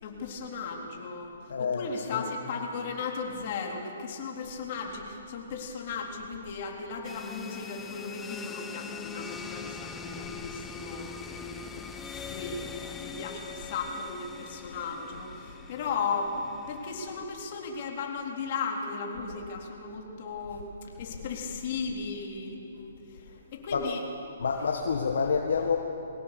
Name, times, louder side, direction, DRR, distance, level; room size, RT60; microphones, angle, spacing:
voice 1, 0.0-1.3 1.6-24.0, left 4 dB, 45° left, 0 dB, 3.7 m, -36 dB
voice 2, 1.5-2.3 23.7-24.0 24.4-25.8, left 5 dB, 70° left, 2 dB, 1.6 m, -28 dB
sound 1, 7.0-17.3, left 5 dB, 15° left, 1.2 m, -42 dB
22.5 x 18.5 x 6.9 m, 2.9 s
hypercardioid pair, 140°, 0 cm